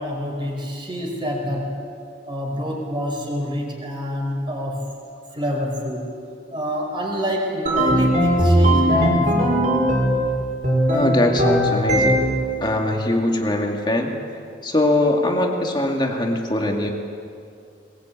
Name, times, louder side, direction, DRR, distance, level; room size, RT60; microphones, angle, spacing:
voice 1, 0.0-1.8 2.3-4.9 5.3-6.1 6.5-9.6, equal, 25° right, 0 dB, 4.8 m, -27 dB
sound 1, 7.7-10.3 10.6-12.5, equal, 40° right, 5.1 m, -18 dB
voice 2, 10.9-12.2 12.6-14.1 14.6-16.9, left 1 dB, 25° left, 2 dB, 2.3 m, -21 dB
21.0 x 21.0 x 8.7 m, 2.4 s
head